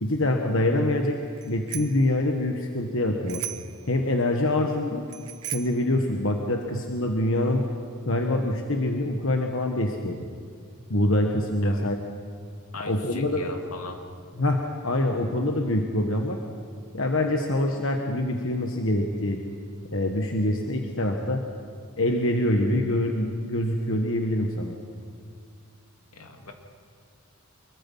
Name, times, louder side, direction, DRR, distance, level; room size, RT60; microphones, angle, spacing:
voice 1, 0.0-1.2 1.5-3.4 3.9-5.0 5.5-7.7 8.1-10.3 10.9-12.0 12.8-13.5 14.4-16.4 16.9-19.4 19.9-21.4 22.0-24.8, left 1 dB, 60° left, 3 dB, 1.4 m, -25 dB
Bicycle bell, 1.4-2.1 3.3-3.8 5.1-5.9, right 12 dB, 85° right, 1.2 m, -36 dB
voice 2, 12.7-14.1 26.1-26.5, left 2 dB, 80° left, 4 dB, 2.5 m, -38 dB
25.0 x 22.5 x 5.6 m, 2.2 s
head